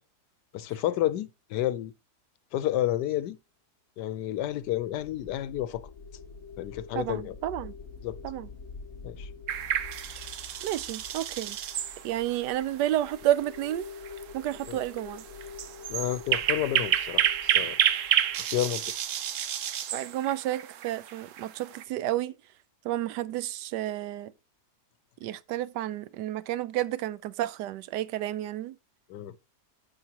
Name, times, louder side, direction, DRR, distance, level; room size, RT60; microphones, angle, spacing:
voice 1, 0.5-1.9 2.5-3.4 4.0-5.8 6.6-7.3 8.0-8.2 9.0-9.3 14.7-14.8 15.9-17.8 18.5-18.8 29.1-29.3, left 13 dB, 85° left, 1.3 m, -30 dB
sound 1, 5.1-19.5, left 5 dB, 55° left, 1.4 m, -47 dB
voice 2, 6.9-7.7 8.2-8.5 10.6-11.6 12.0-13.9 14.3-15.2 19.9-22.3 22.8-24.3 25.2-28.8, right 13 dB, 90° right, 1.2 m, -31 dB
sound 2, 9.5-21.8, right 10 dB, 60° right, 0.9 m, -30 dB
10.5 x 6.6 x 2.9 m
omnidirectional pair, 1.8 m